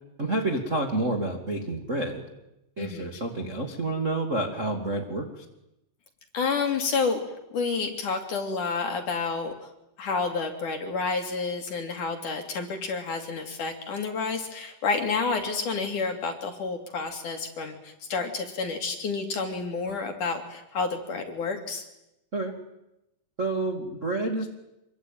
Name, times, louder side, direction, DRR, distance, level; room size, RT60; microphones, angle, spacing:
voice 1, 0.2-2.2 2.8-5.4 22.3-22.5 23.4-24.5, right 2 dB, 30° right, 1 dB, 1.3 m, -29 dB
voice 2, 2.8-3.1 6.3-7.2 7.5-9.7 10.0-21.8, left 4 dB, 45° left, 4 dB, 3.2 m, -29 dB
26.5 x 23.0 x 9.3 m, 0.87 s
omnidirectional pair, 5.9 m